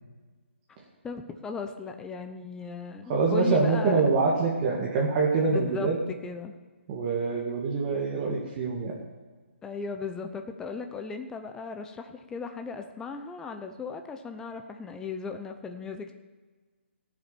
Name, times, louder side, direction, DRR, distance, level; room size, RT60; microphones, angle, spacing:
voice 1, 1.0-4.0 5.5-6.6 9.6-16.1, left 5 dB, 10° left, 6 dB, 0.7 m, -37 dB
voice 2, 3.1-6.0 6.9-8.9, right 4 dB, 30° right, -3 dB, 2.3 m, -25 dB
17.5 x 7.3 x 7.0 m, 1.4 s
figure-of-eight pair, 140°, 7 cm